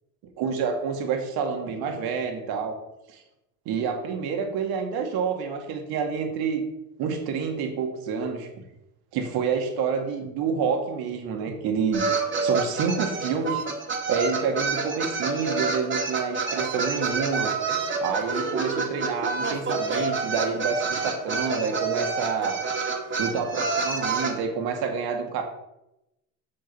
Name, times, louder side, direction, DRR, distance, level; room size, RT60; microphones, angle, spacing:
voice 1, 0.4-2.8 3.1-3.2 3.7-6.6 7.0-8.5 9.1-12.0 12.4-13.6 14.1-17.5 18.0-22.6 23.2-25.4, right 6 dB, 65° right, 4 dB, 2.1 m, -28 dB
sound 1, 11.9-24.3, right 4 dB, 30° right, 2.0 m, -28 dB
7.8 x 6.6 x 5.4 m, 0.88 s
supercardioid pair, 110°, 39 cm